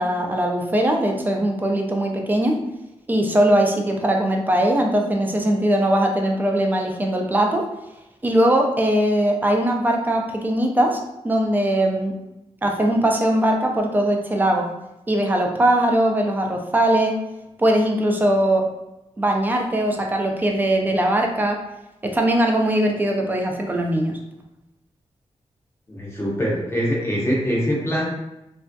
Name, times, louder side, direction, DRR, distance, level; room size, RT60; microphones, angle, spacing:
voice 1, 0.0-2.6 3.1-7.7 8.2-11.0 11.2-12.2 12.6-14.7 15.1-17.2 17.6-18.7 19.2-21.6 22.0-24.2, right 1 dB, 15° right, 2 dB, 0.3 m, -20 dB
voice 2, 25.9-28.1, equal, 20° left, -5 dB, 0.7 m, -23 dB
3.4 x 2.5 x 2.2 m, 0.91 s
wide cardioid pair, 170°, 12 cm